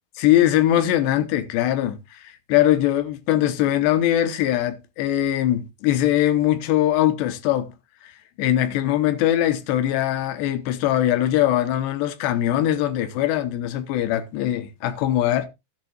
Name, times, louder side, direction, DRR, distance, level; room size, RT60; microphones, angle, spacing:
voice 1, 0.2-7.7 8.0-8.1 8.4-15.5, left 12 dB, 85° left, 3.1 m, -21 dB
13.5 x 10.5 x 2.4 m
omnidirectional pair, 5.0 m